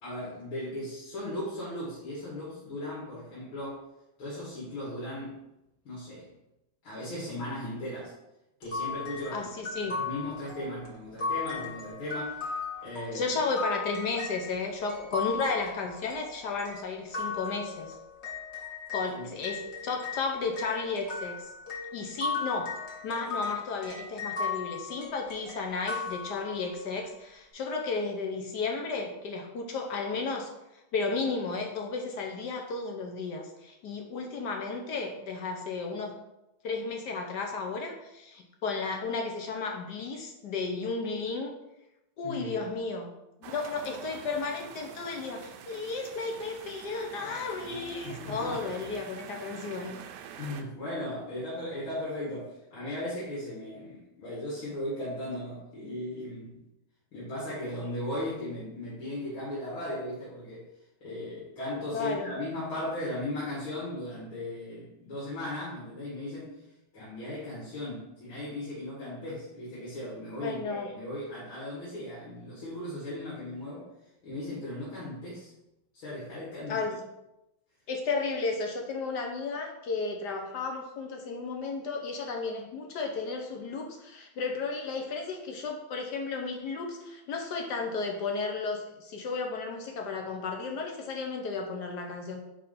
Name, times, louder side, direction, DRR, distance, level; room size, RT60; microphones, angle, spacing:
voice 1, 0.0-3.8 4.2-5.4 5.8-6.3 6.8-8.1 8.6-9.5 9.8-12.5 12.8-13.3 19.1-19.3 42.2-42.6 47.2-47.3 48.0-48.6 50.4-56.6 57.1-60.7 61.0-66.6 66.9-73.9 74.2-75.5 75.9-76.9, left 1 dB, 90° left, -8 dB, 2.8 m, -37 dB
sound 1, 8.6-19.1 19.4-26.8, left 4 dB, 35° left, 1.5 m, -37 dB
voice 2, 9.3-9.9 13.1-17.9 18.9-21.5 21.9-22.7 23.0-30.5 30.9-36.1 36.6-41.6 42.2-43.1 43.4-50.0 61.9-62.3 70.4-70.9 76.7-77.0 77.9-92.4, left 4 dB, 65° left, 2 dB, 1.3 m, -33 dB
sound 2, 43.4-50.6, right 8 dB, 75° right, 1.0 m, -46 dB
4.9 x 4.8 x 5.3 m, 0.90 s
omnidirectional pair, 2.2 m